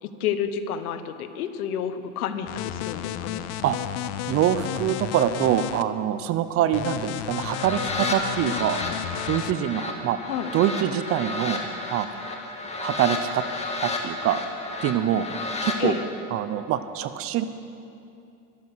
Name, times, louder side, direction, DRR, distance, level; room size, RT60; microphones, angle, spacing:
voice 1, 0.0-3.5 10.2-10.5 15.8-16.0, left 8 dB, 75° left, 10 dB, 1.2 m, -30 dB
sound 1, 2.5-5.8 6.7-9.5, left 12 dB, 35° left, 0.5 m, -33 dB
voice 2, 4.3-8.8 9.3-10.2 10.5-11.6 11.9-12.1 12.8-13.5 13.8-14.4 14.8-15.3 15.6-15.9 16.3-17.4, right 11 dB, 30° right, 12 dB, 0.6 m, -24 dB
sound 2, 7.3-15.8, left 2 dB, 15° left, 1.8 m, -32 dB
13.0 x 12.5 x 6.2 m, 2.7 s
supercardioid pair, 120°, 44 cm